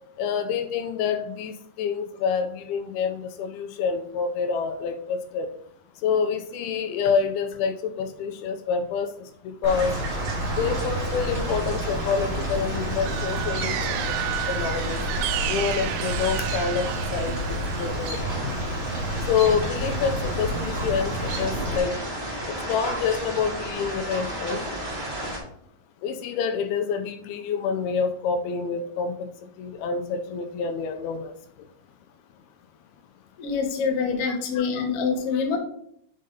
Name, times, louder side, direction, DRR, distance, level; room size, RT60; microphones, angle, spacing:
voice 1, 0.2-5.5 6.0-9.9 10.6-14.0 14.3-15.0 15.5-18.5 19.3-21.9 22.7-24.6 26.0-29.2 29.6-31.3 34.2-34.9 35.3-35.4, left 6 dB, 80° left, 6 dB, 2.4 m, -27 dB
sound 1, 9.6-25.4, right 1 dB, 40° right, 0.8 m, -33 dB
Chirp tweet, 9.6-21.8, right 1 dB, 65° right, 2.2 m, -30 dB
sound 2, 12.7-17.9, right 12 dB, 85° right, 2.6 m, -32 dB
voice 2, 33.4-35.6, left 5 dB, 60° left, 1 dB, 1.6 m, -25 dB
6.5 x 4.1 x 5.0 m, 0.68 s
omnidirectional pair, 4.5 m